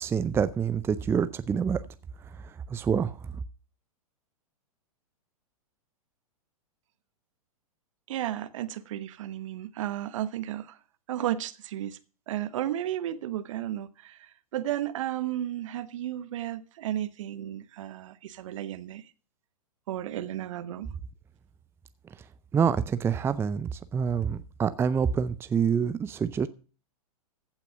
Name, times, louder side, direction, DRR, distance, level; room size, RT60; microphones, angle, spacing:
voice 1, 0.0-1.8 2.7-3.2 22.5-26.5, right 7 dB, 15° right, 0.5 m, -26 dB
voice 2, 8.1-10.8 11.1-12.0 12.3-19.0 19.9-20.9, right 12 dB, 60° right, 1.1 m, -33 dB
15.0 x 5.9 x 6.8 m
figure-of-eight pair, 110°, 19 cm